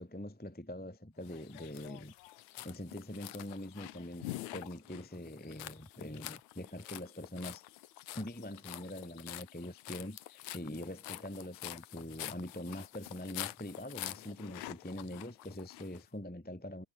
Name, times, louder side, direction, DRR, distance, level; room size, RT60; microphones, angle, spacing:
voice 1, 0.0-2.1 2.6-7.6 8.1-16.8, left 1 dB, 5° left, 1.3 m, -44 dB
sound 1, 1.2-16.0, left 15 dB, 80° left, 2.2 m, -47 dB
omnidirectional pair, 3.5 m